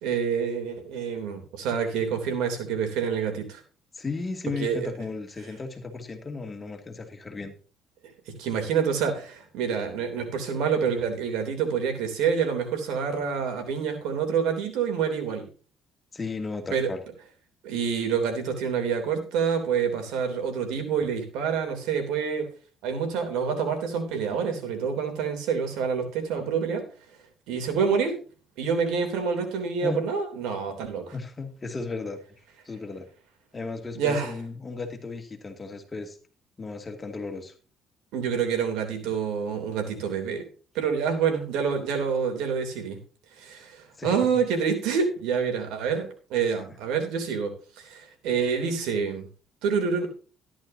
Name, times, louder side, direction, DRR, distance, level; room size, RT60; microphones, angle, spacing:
voice 1, 0.0-3.6 4.6-4.9 8.3-15.4 16.7-16.9 17.6-22.5 22.8-26.9 27.5-28.2 28.6-31.1 33.9-34.3 38.1-40.4 40.7-43.0 43.4-49.2 49.6-50.1, right 6 dB, 90° right, 6 dB, 3.2 m, -27 dB
voice 2, 3.9-7.5 16.1-17.0 29.8-30.0 31.1-32.2 32.6-33.1 33.5-36.2 36.6-37.5 44.0-44.4, left 3 dB, 25° left, 4 dB, 2.4 m, -35 dB
13.5 x 11.5 x 2.8 m, 0.36 s
cardioid pair, 100°, 0 cm